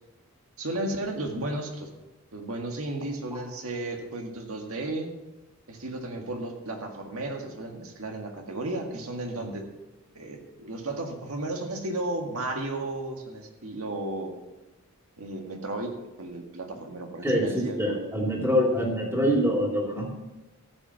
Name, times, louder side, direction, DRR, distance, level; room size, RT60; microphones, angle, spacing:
voice 1, 0.6-1.9 2.3-5.1 5.7-9.6 10.1-14.3 15.2-17.8, right 2 dB, 75° right, 3 dB, 1.9 m, -34 dB
voice 2, 17.2-20.1, equal, 10° right, -2 dB, 2.8 m, -25 dB
14.0 x 7.9 x 5.7 m, 1.1 s
head